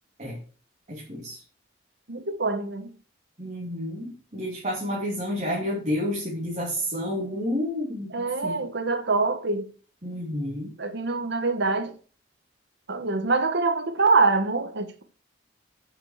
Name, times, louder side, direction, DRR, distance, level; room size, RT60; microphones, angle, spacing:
voice 1, 0.9-1.4 3.4-8.7 10.0-10.7, left 1 dB, 40° right, 3.0 m, -30 dB
voice 2, 2.1-2.9 8.1-9.7 10.8-11.9 12.9-15.0, right 3 dB, 65° right, 1.3 m, -24 dB
9.2 x 6.0 x 6.6 m
head